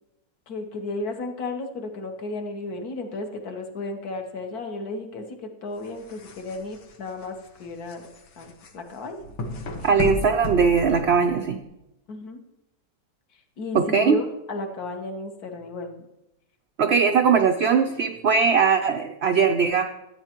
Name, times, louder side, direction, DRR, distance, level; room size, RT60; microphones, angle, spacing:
voice 1, 0.5-8.1 8.4-9.2 12.1-12.4 13.6-16.1, left 3 dB, 65° left, 4 dB, 1.6 m, -34 dB
sound 1, 5.7-11.6, left 1 dB, 80° left, 1.8 m, -34 dB
voice 2, 9.8-11.6 13.7-14.2 16.8-19.8, right 5 dB, 85° right, 6 dB, 0.5 m, -20 dB
13.5 x 9.1 x 3.0 m, 0.89 s
omnidirectional pair, 1.8 m